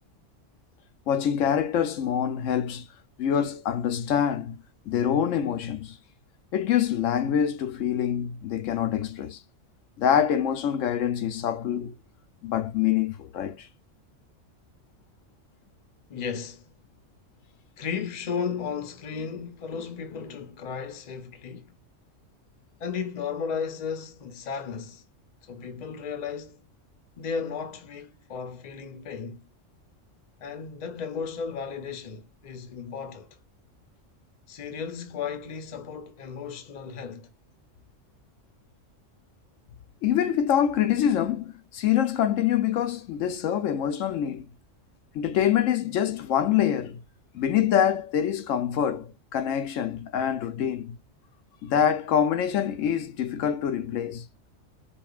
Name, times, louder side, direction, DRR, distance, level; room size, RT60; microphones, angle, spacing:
voice 1, 1.1-2.9 3.2-4.6 4.9-6.0 6.5-9.4 10.0-11.9 12.4-13.7 40.0-44.5 45.1-47.0 47.3-51.0 51.6-54.3, left 9 dB, 85° left, 1.0 m, -25 dB
voice 2, 16.1-16.7 17.8-21.7 22.8-25.0 25.5-26.6 27.2-29.4 30.4-33.4 34.5-37.3, left 6 dB, 40° left, 0.8 m, -34 dB
5.2 x 2.4 x 2.3 m
omnidirectional pair, 1.3 m